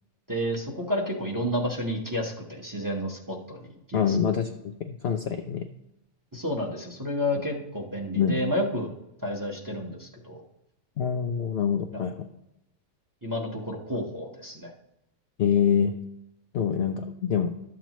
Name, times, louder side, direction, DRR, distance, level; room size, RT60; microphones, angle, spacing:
voice 1, 0.3-4.2 6.3-8.9 9.2-10.4 11.9-12.1 13.2-14.7, equal, 15° right, -1 dB, 1.1 m, -30 dB
voice 2, 3.9-5.7 8.2-8.3 11.0-12.2 15.4-15.9 16.5-17.5, left 7 dB, 60° left, 5 dB, 0.7 m, -25 dB
12.0 x 7.3 x 3.0 m, 0.88 s
omnidirectional pair, 1.5 m